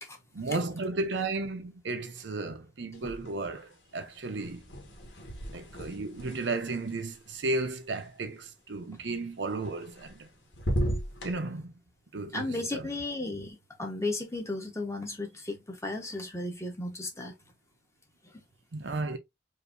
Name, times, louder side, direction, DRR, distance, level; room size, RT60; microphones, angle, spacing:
voice 1, 0.3-4.6 5.5-10.3 11.2-11.7 12.1-12.9 18.7-19.2, right 3 dB, 75° right, 0.8 m, -34 dB
sound 1, 2.9-3.7 3.9-8.0 9.6-10.3 10.5-11.3, equal, 85° left, 1.7 m, -36 dB
voice 2, 12.3-17.3 18.2-18.4, left 2 dB, 15° left, 1.1 m, -35 dB
4.9 x 2.7 x 2.5 m
head